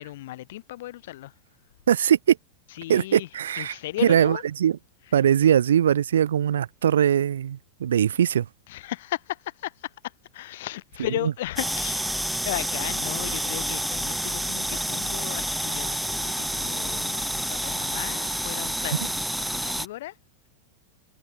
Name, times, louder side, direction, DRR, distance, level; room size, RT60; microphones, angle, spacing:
voice 1, 0.0-1.3 2.7-3.3 3.6-4.4 8.7-12.1 12.4-20.2, left 16 dB, 55° left, 5.5 m, -35 dB
voice 2, 1.9-2.4 2.9-3.7 4.0-4.8 5.1-8.4, right 9 dB, 65° right, 1.5 m, -21 dB
sound 1, 11.6-19.9, right 1 dB, ahead, 1.7 m, -29 dB
figure-of-eight pair, 90°, 0 cm